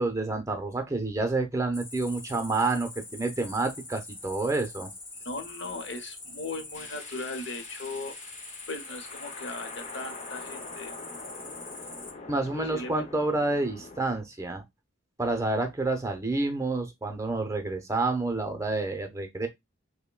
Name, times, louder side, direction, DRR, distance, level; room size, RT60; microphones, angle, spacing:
voice 1, 0.0-4.9 12.3-14.6 15.2-19.5, right 2 dB, 15° right, 0.6 m, -29 dB
Cricket, 1.7-12.1, left 2 dB, 20° left, 2.2 m, -44 dB
voice 2, 5.2-8.1 8.7-10.9 12.3-13.0, left 3 dB, 65° left, 0.9 m, -38 dB
sound 1, 6.7-14.2, left 3 dB, 40° left, 0.7 m, -44 dB
5.6 x 2.2 x 2.2 m
head